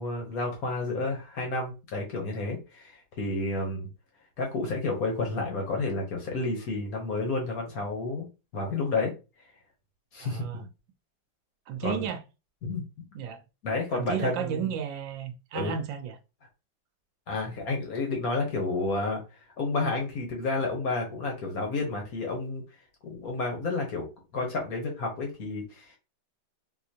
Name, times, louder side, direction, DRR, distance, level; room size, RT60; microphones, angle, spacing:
voice 1, 0.0-3.9 4.4-8.3 8.5-9.1 10.1-10.5 11.8-12.1 12.6-13.1 13.6-14.7 15.5-15.7 17.3-19.2 19.6-22.6 23.0-24.1 24.3-26.0, left 3 dB, 55° left, 1.3 m, -30 dB
voice 2, 10.2-10.7 11.7-12.2 13.1-13.4 13.9-16.1, right 8 dB, 80° right, 1.3 m, -33 dB
3.7 x 2.8 x 2.8 m
omnidirectional pair, 2.1 m